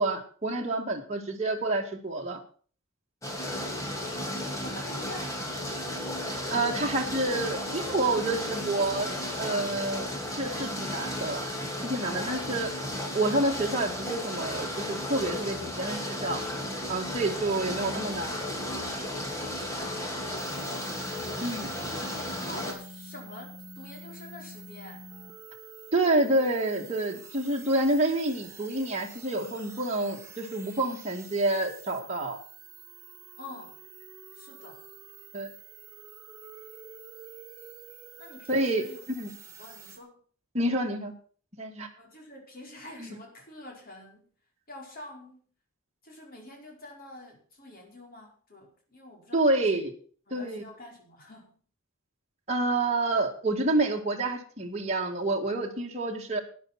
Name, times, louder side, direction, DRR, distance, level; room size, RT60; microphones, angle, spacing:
voice 1, 0.0-2.4 6.5-11.5 11.8-12.7 13.1-16.4 16.9-18.3 21.4-21.7 25.9-32.4 35.3-35.5 38.5-38.8 39.2-39.3 40.5-41.1 41.6-41.9 43.0-43.1 49.3-49.9 50.3-50.6 52.5-56.4, right 2 dB, 30° right, 0 dB, 2.0 m, -28 dB
sound 1, 3.2-22.7, left 1 dB, 15° left, 2.9 m, -34 dB
voice 2, 4.3-5.6 19.7-21.1 22.0-25.1 33.4-33.8 34.3-34.8 38.2-39.2 39.6-40.2 42.0-44.3 44.7-45.5 46.0-49.8 50.3-51.6, left 1 dB, 40° left, 1 dB, 5.0 m, -47 dB
sound 2, 20.4-40.0, right 3 dB, 15° right, 1.7 m, -48 dB
13.0 x 10.0 x 5.9 m, 0.44 s
head